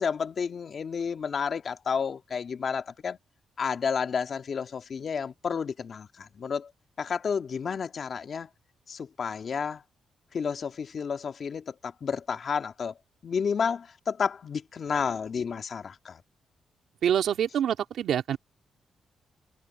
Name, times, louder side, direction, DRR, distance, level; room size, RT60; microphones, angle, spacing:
voice 1, 0.0-3.2 3.6-6.7 7.0-8.5 8.9-9.8 10.3-12.9 13.2-16.2, left 6 dB, 50° left, 2.0 m, -31 dB
voice 2, 17.0-18.4, right 9 dB, 75° right, 2.3 m, -26 dB
cardioid pair, 95°, 0 cm